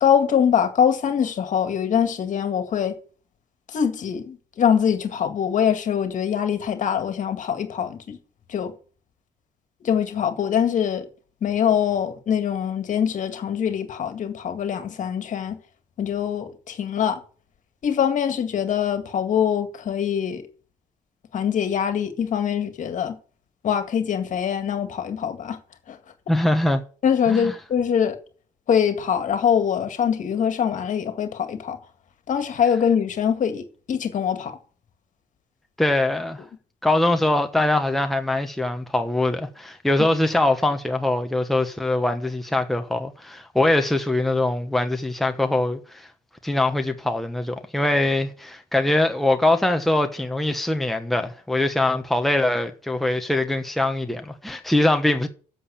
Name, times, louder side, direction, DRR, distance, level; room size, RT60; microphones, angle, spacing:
voice 1, 0.0-2.9 3.7-8.2 8.5-8.7 9.8-11.1 11.4-15.6 16.0-17.2 17.8-20.4 21.3-23.1 23.6-25.6 25.9-26.0 27.0-28.2 28.7-31.8 32.3-34.5, left 8 dB, 60° left, 2.0 m, -23 dB
voice 2, 26.3-26.8 27.3-27.5 35.8-36.4 36.8-46.1 46.4-55.3, left 2 dB, ahead, 1.1 m, -22 dB
7.9 x 7.3 x 8.6 m
cardioid pair, 105°, 15 cm